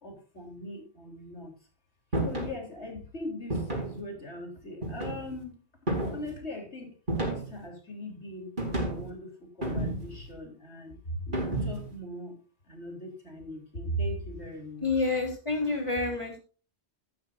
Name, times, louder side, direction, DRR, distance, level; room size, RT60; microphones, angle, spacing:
voice 1, 0.0-1.5 2.2-5.6 6.1-6.9 7.2-8.5 8.8-12.4 12.7-15.1, equal, 85° left, 2 dB, 4.1 m, -39 dB
sound 1, 2.1-2.6 3.5-4.0 4.8-5.4 5.9-6.3 7.1-7.6 8.6-9.1 9.6-10.2 11.3-11.9, right 1 dB, 50° right, 4.6 m, -31 dB
voice 2, 14.8-16.3, left 3 dB, 25° left, 1 dB, 3.7 m, -28 dB
13.0 x 12.5 x 2.7 m, 0.35 s
omnidirectional pair, 1.1 m